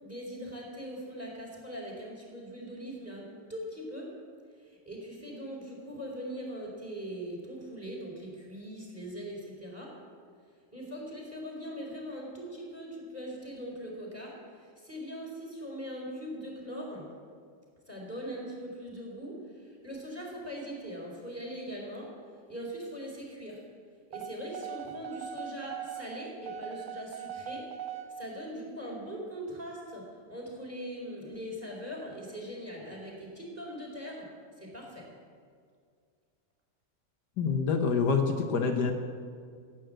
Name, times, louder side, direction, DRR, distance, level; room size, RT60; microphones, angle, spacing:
voice 1, 0.0-4.1 4.6-9.9 10.7-17.1 17.9-22.1 22.5-23.6 24.1-34.3 34.6-35.0, equal, 10° right, -3 dB, 4.2 m, -41 dB
sound 1, 24.1-28.1, right 9 dB, 75° right, 1.6 m, -40 dB
voice 2, 37.4-38.9, left 5 dB, 75° left, 4 dB, 1.7 m, -26 dB
15.5 x 9.2 x 7.8 m, 2.1 s
omnidirectional pair, 1.8 m